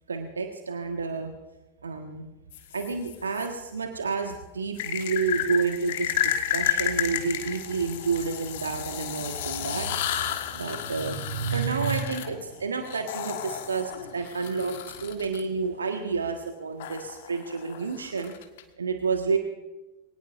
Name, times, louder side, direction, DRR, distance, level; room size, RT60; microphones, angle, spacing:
voice 1, 0.1-1.3 1.8-2.3 2.7-10.2 10.5-18.3 18.8-19.4, right 5 dB, 75° right, 5 dB, 1.5 m, -30 dB
sound 1, 2.5-3.5 4.8-15.4 16.8-18.6, left 11 dB, 55° left, 1.5 m, -32 dB
23.5 x 18.0 x 2.6 m, 1.1 s
figure-of-eight pair, 90°, 0 cm